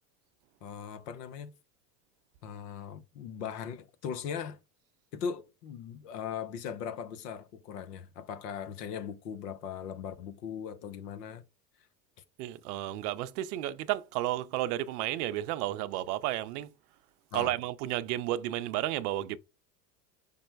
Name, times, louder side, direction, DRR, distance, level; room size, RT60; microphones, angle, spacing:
voice 1, 0.6-1.5 2.4-4.6 5.1-11.4 17.3-17.5, left 7 dB, 70° left, 0.9 m, -39 dB
voice 2, 12.4-16.7 17.3-19.4, right 14 dB, 70° right, 0.6 m, -32 dB
5.3 x 2.1 x 4.5 m
hypercardioid pair, 85°, 49 cm